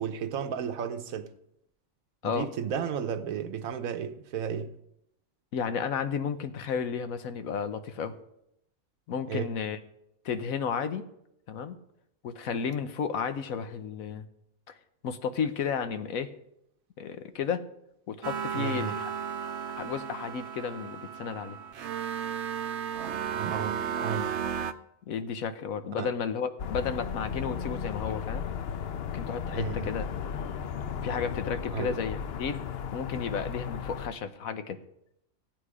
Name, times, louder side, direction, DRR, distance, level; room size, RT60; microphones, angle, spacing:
voice 1, 0.0-1.3 2.2-4.8 9.3-9.5 18.5-19.0 23.3-24.4 26.0-26.1 29.5-29.9 31.7-32.0 33.1-33.2, right 7 dB, 80° right, 1.3 m, -33 dB
voice 2, 5.5-8.2 9.1-9.8 10.2-11.0 11.5-11.8 12.2-14.3 14.7-14.8 15.0-16.3 17.0-17.7 18.1-19.1 19.4-19.5 19.8-21.6 25.1-28.4 29.1-30.1 31.0-32.6 32.9-34.8, left 6 dB, 85° left, 1.3 m, -33 dB
sound 1, 18.2-24.7, right 8 dB, 60° right, 0.9 m, -34 dB
sound 2, 26.6-34.1, left 7 dB, 55° left, 0.8 m, -35 dB
14.5 x 9.1 x 4.9 m
omnidirectional pair, 1.4 m